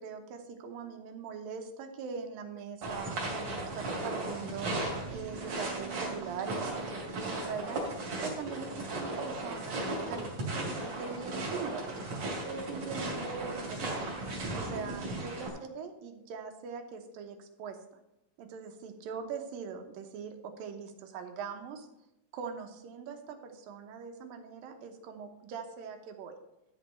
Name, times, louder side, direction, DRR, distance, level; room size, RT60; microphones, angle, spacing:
voice 1, 0.0-14.0 14.5-17.8 18.4-21.9 22.3-26.4, right 6 dB, 85° right, 5 dB, 2.8 m, -42 dB
sound 1, 2.8-15.5, right 2 dB, 50° right, 3.7 m, -36 dB
13.0 x 4.6 x 7.6 m, 0.89 s
omnidirectional pair, 4.0 m